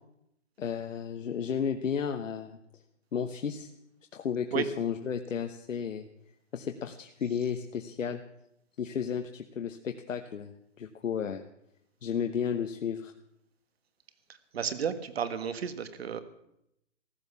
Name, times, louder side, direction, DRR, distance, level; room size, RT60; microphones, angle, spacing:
voice 1, 0.6-2.6 3.1-3.7 4.1-6.1 6.5-8.2 8.8-10.5 10.8-11.4 12.0-13.1, left 7 dB, 90° left, 6 dB, 1.2 m, -33 dB
voice 2, 14.5-16.2, right 7 dB, 55° right, 12 dB, 1.5 m, -32 dB
15.5 x 11.5 x 7.0 m, 0.79 s
hypercardioid pair, 170°, 38 cm